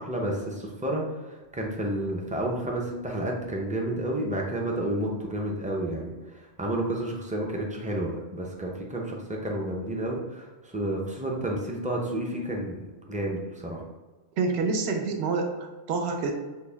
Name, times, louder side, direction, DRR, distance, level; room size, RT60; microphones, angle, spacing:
voice 1, 0.0-13.8, right 1 dB, 10° right, -1 dB, 0.4 m, -31 dB
voice 2, 14.4-16.3, right 4 dB, 65° right, 3 dB, 0.9 m, -27 dB
6.3 x 2.2 x 3.4 m, 1.2 s
omnidirectional pair, 1.2 m